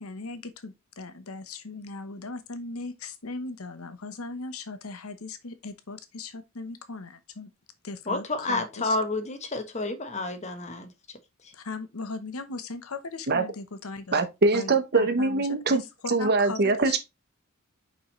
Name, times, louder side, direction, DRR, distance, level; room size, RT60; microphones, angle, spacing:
voice 1, 0.0-7.5 7.8-9.0 11.5-14.2 14.5-15.8 16.2-17.0, left 3 dB, 85° left, 1.0 m, -38 dB
voice 2, 8.1-10.9, left 2 dB, 35° left, 1.2 m, -30 dB
voice 3, 14.1-15.8 16.1-17.0, right 3 dB, 50° right, 1.1 m, -23 dB
5.6 x 5.4 x 3.2 m
head